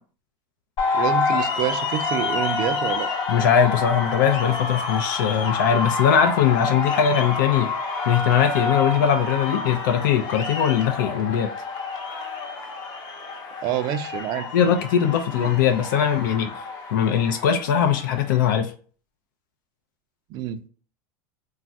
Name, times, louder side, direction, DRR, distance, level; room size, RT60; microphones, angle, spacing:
sound 1, 0.8-18.5, left 4 dB, 40° left, 0.7 m, -28 dB
voice 1, 0.9-3.1 13.6-14.5 15.4-15.5 20.3-20.6, right 11 dB, 45° right, 11 dB, 0.3 m, -27 dB
voice 2, 3.3-7.7 8.1-11.5 14.5-16.5 16.9-18.7, left 8 dB, 90° left, 6 dB, 0.4 m, -20 dB
3.1 x 2.3 x 2.6 m, 0.41 s
supercardioid pair, 140°, 10 cm